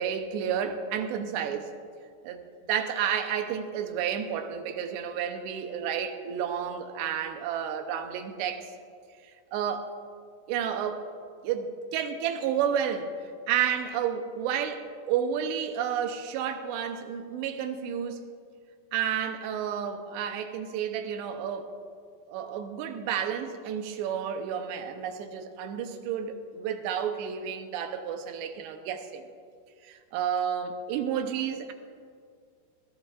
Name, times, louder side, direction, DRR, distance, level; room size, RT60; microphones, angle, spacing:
voice 1, 0.0-1.7 2.2-2.4 2.7-8.7 9.2-9.9 10.5-11.1 11.4-18.2 18.9-21.7 22.3-29.2 29.8-31.7, right 8 dB, 85° right, 7 dB, 3.0 m, -31 dB
20.5 x 15.5 x 2.5 m, 2.3 s
omnidirectional pair, 4.9 m